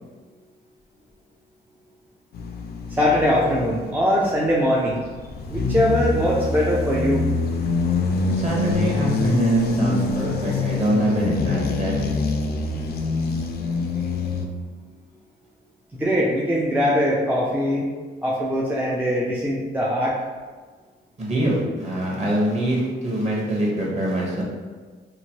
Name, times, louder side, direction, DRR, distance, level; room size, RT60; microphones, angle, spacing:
sound 1, 2.3-4.0 4.6-14.5, left 3 dB, 55° left, 0.4 m, -25 dB
voice 1, 2.9-5.1 5.4-7.2 15.9-17.9 18.2-20.2, equal, 10° right, -5 dB, 0.4 m, -21 dB
voice 2, 8.3-12.0 21.2-24.4, right 1 dB, 35° right, -4 dB, 1.0 m, -23 dB
3.0 x 2.2 x 2.8 m, 1.4 s
cardioid pair, 90°, 20 cm